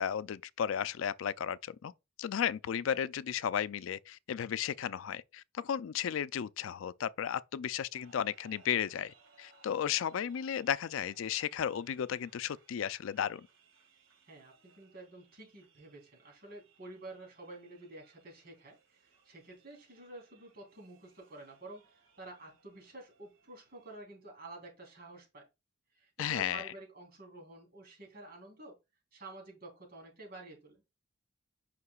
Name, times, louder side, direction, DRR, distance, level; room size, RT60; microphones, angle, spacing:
voice 1, 0.0-1.9 2.2-13.5 26.2-26.7, left 8 dB, 85° left, 0.4 m, -34 dB
sound 1, 7.9-24.0, right 4 dB, 85° right, 2.1 m, -66 dB
voice 2, 14.3-25.4 25.9-28.7 29.1-30.8, right 2 dB, 50° right, 3.4 m, -50 dB
9.5 x 5.8 x 2.3 m
head